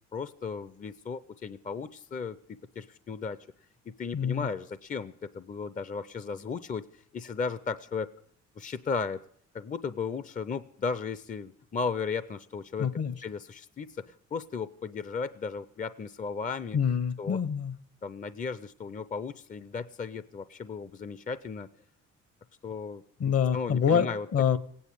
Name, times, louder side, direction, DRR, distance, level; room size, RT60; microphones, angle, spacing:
voice 1, 0.1-3.4 3.9-8.1 8.6-9.2 9.5-12.9 13.2-16.8 17.2-17.4 18.0-21.7 22.6-23.0 23.5-24.3, left 5 dB, 25° left, 15 dB, 0.6 m, -35 dB
voice 2, 4.1-4.5 12.8-13.1 16.7-17.7 23.2-24.6, left 7 dB, 55° left, 16 dB, 1.1 m, -26 dB
17.5 x 9.5 x 8.4 m, 0.62 s
cardioid pair, 90°, 30 cm